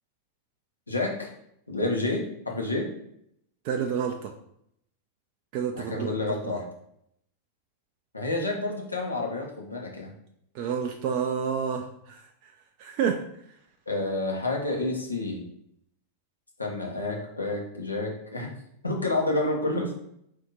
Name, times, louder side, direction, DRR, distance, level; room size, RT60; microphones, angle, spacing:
voice 1, 0.9-1.3 1.7-2.9 5.8-6.6 8.1-10.1 13.9-15.4 16.6-18.5 18.8-19.9, left 2 dB, 80° left, 0 dB, 0.9 m, -29 dB
voice 2, 3.6-4.3 5.5-6.1 6.4-6.6 10.5-12.2 12.8-13.2, right 7 dB, 45° right, 4 dB, 0.4 m, -29 dB
4.2 x 2.8 x 3.8 m, 0.73 s
figure-of-eight pair, 90°, 0 cm